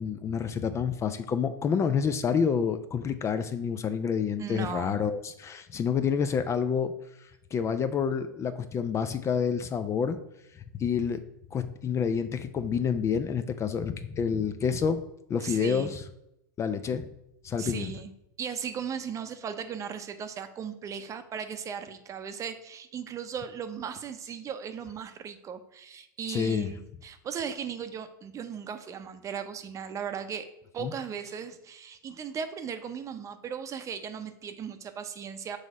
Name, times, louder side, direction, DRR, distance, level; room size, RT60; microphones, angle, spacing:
voice 1, 0.0-6.9 7.5-10.2 10.7-11.2 11.5-15.0 15.3-16.0 16.6-17.1 17.4-17.9 26.3-26.7 30.8-30.9, left 6 dB, 25° left, 10 dB, 0.5 m, -28 dB
voice 2, 4.4-5.0 15.4-15.9 17.6-18.1 18.4-30.5 30.7-35.6, right 7 dB, 30° right, 9 dB, 0.7 m, -37 dB
6.5 x 4.1 x 4.9 m, 0.82 s
hypercardioid pair, 105°, 11 cm